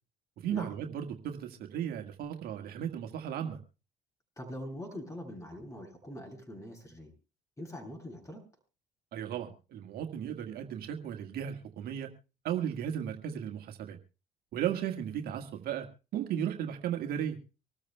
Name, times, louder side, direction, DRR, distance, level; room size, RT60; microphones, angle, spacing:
voice 1, 0.4-3.6 9.1-12.1 12.4-14.0 14.5-17.4, right 9 dB, 65° right, 4 dB, 1.7 m, -35 dB
voice 2, 4.4-7.1 7.6-8.4, left 1 dB, 20° left, 2 dB, 7.5 m, -43 dB
25.0 x 13.5 x 2.3 m, 0.33 s
hypercardioid pair, 65°, 17 cm